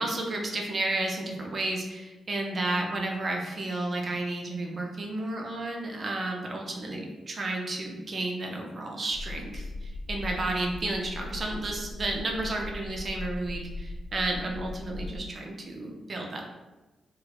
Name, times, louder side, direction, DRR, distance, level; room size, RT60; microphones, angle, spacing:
voice 1, 0.0-16.4, right 2 dB, 50° right, 1 dB, 0.6 m, -32 dB
sound 1, 9.1-15.2, left 2 dB, 75° left, 0.4 m, -39 dB
4.6 x 2.2 x 2.9 m, 1.1 s
cardioid pair, 65°, 0 cm